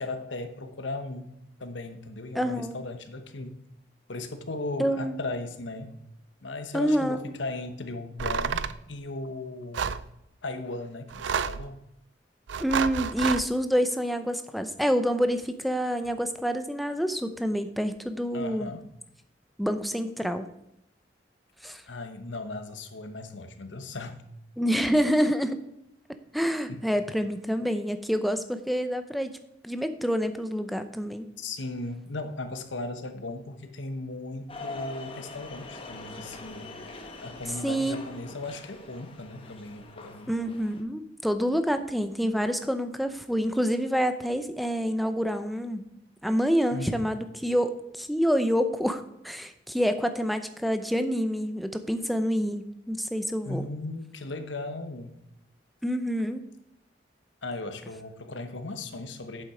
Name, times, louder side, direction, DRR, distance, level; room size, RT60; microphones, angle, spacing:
voice 1, 0.0-1.3 1.6-3.6 4.1-6.0 6.4-10.0 10.4-11.8 18.3-18.9 21.9-24.2 26.7-26.8 31.4-36.7 37.2-40.3 46.7-47.1 53.4-55.2 57.4-59.4, left 2 dB, 90° left, 8 dB, 1.1 m, -37 dB
voice 2, 2.3-2.8 4.8-5.2 6.7-7.2 12.6-18.7 19.6-20.5 21.6-21.8 24.6-25.6 26.3-29.3 29.6-31.3 37.6-38.0 40.3-45.9 46.2-53.7 55.8-56.4, equal, ahead, 8 dB, 0.6 m, -27 dB
sound 1, 8.2-8.8 9.7-10.0 11.1-11.7 12.5-13.5, right 6 dB, 80° right, 0.4 m, -29 dB
sound 2, 34.5-40.8, left 2 dB, 30° left, 1.1 m, -43 dB
8.3 x 7.3 x 4.9 m, 0.82 s
head